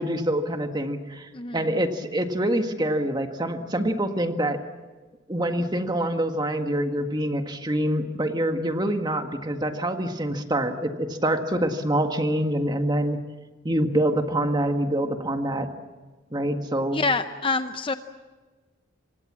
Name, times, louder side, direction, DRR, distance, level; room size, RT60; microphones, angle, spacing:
voice 1, 0.0-4.6 5.3-13.2 13.6-15.7 16.3-17.0, right 1 dB, 20° right, 6 dB, 1.7 m, -25 dB
voice 2, 16.9-17.9, left 3 dB, 25° left, 9 dB, 0.7 m, -26 dB
27.0 x 25.0 x 7.5 m, 1.3 s
head